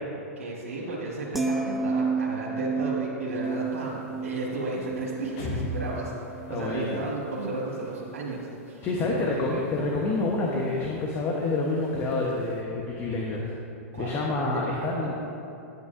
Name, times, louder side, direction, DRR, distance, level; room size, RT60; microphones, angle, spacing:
voice 1, 0.4-9.7 13.1-13.4 13.9-14.7 15.0-15.1, right 2 dB, 85° right, -5 dB, 1.3 m, -34 dB
sound 1, 1.3-7.6 8.0-8.3, right 4 dB, ahead, 0.4 m, -32 dB
sound 2, 3.4-12.6, left 1 dB, 45° left, 1.2 m, -42 dB
voice 2, 6.5-7.0 8.8-13.5 13.9-15.1, left 2 dB, 30° left, -2 dB, 0.9 m, -28 dB
9.0 x 8.3 x 2.5 m, 2.7 s
hypercardioid pair, 125°, 8 cm